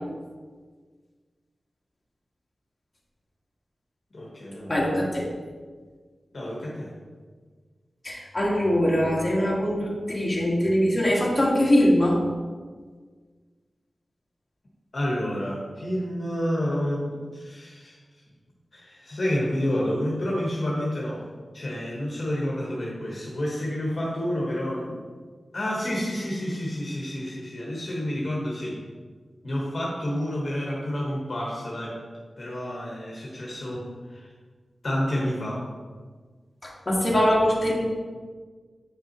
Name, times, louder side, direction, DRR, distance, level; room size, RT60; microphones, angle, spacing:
voice 1, 4.1-4.9 6.3-6.9 14.9-18.0 18.7-21.2 21.5-25.0 25.5-28.8 29.4-32.0 32.4-34.3 34.8-35.7, left 1 dB, 50° left, -4 dB, 1.2 m, -29 dB
voice 2, 4.7-5.3 8.0-12.2 36.6-37.8, equal, 25° left, -5 dB, 1.7 m, -22 dB
8.0 x 5.7 x 3.0 m, 1.5 s
wide cardioid pair, 90°, 0 cm